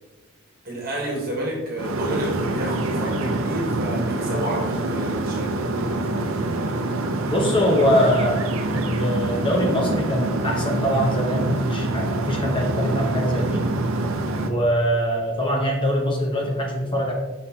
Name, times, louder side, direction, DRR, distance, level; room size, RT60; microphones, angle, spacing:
voice 1, 0.6-6.5, right 1 dB, 45° right, -2 dB, 1.4 m, -30 dB
sound 1, 1.8-14.5, right 2 dB, 70° right, 0.6 m, -26 dB
voice 2, 7.3-13.7 14.4-17.1, equal, 25° left, 0 dB, 1.0 m, -23 dB
6.0 x 5.5 x 2.9 m, 1.2 s
head